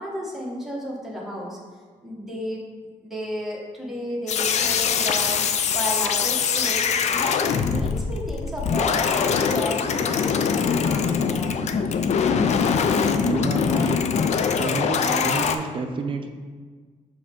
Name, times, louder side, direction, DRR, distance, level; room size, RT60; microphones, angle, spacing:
voice 1, 0.0-1.6 2.0-2.6 3.0-5.4 5.7-11.8, left 1 dB, ahead, -4 dB, 1.2 m, -32 dB
sound 1, 4.3-15.6, left 6 dB, 55° left, 0.4 m, -23 dB
voice 2, 13.2-14.0 14.5-16.3, right 3 dB, 40° right, 4 dB, 0.6 m, -29 dB
6.2 x 4.8 x 3.6 m, 1.5 s
wide cardioid pair, 170°, 14 cm